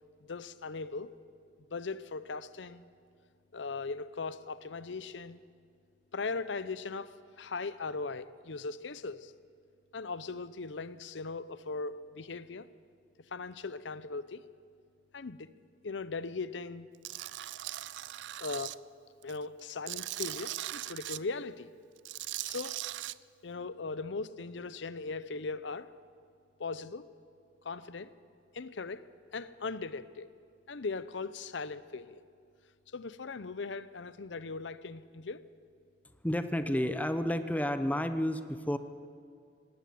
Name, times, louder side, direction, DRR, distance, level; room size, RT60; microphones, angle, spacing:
voice 1, 0.2-1.1 1.7-2.9 3.5-5.4 6.1-9.3 9.9-12.7 13.3-14.5 15.1-15.5 15.8-16.9 18.4-18.8 19.2-21.7 22.4-22.8 23.4-25.9 26.6-27.1 27.6-28.1 28.5-29.1 29.3-30.3 30.7-32.2 32.9-35.4, left 4 dB, 75° left, 0.7 m, -39 dB
Tools, 17.0-18.8 19.2-21.2 22.0-23.1, right 15 dB, 70° right, 0.4 m, -39 dB
voice 2, 36.2-38.8, equal, 10° left, 0.8 m, -31 dB
19.0 x 18.0 x 7.7 m
head